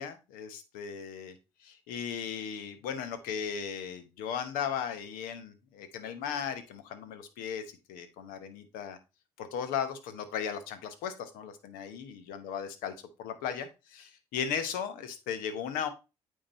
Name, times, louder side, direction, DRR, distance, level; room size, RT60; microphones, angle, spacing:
voice 1, 0.0-1.3 1.6-7.6 7.9-9.0 9.4-12.9 13.2-15.9, left 8 dB, 75° left, 10 dB, 1.0 m, -36 dB
8.8 x 3.7 x 4.1 m, 0.28 s
hypercardioid pair, 50°, 15 cm